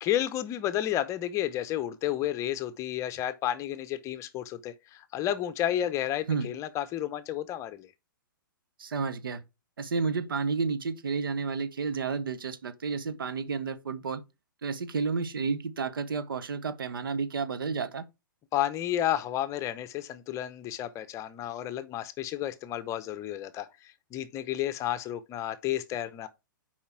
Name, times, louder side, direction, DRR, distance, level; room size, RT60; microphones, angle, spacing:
voice 1, 0.0-7.9 18.5-26.3, left 12 dB, 25° left, 0.8 m, -31 dB
voice 2, 8.8-9.4 9.8-14.2 14.6-18.0, right 5 dB, 80° right, 1.1 m, -31 dB
7.1 x 5.0 x 4.5 m
hypercardioid pair, 125°, 11 cm